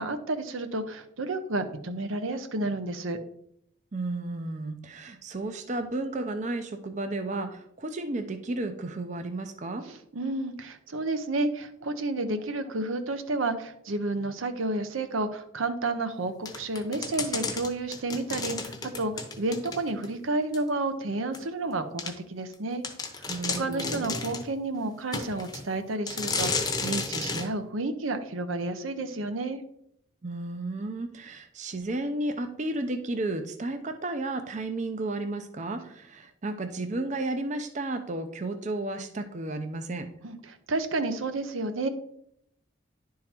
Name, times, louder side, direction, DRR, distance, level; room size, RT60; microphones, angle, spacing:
voice 1, 0.0-3.2 9.9-22.8 23.6-29.6 40.2-41.9, right 2 dB, 85° right, 9 dB, 0.7 m, -31 dB
voice 2, 3.9-9.9 23.3-24.1 30.2-40.1, right 2 dB, 35° right, 8 dB, 0.5 m, -33 dB
sound 1, 16.5-20.1 20.5-20.6 21.3-21.4 22.0-22.1 22.5-22.6 22.8-24.5 25.1-25.6 26.1-27.5, left 4 dB, 20° left, 0.8 m, -32 dB
10.5 x 3.8 x 4.3 m, 0.71 s
head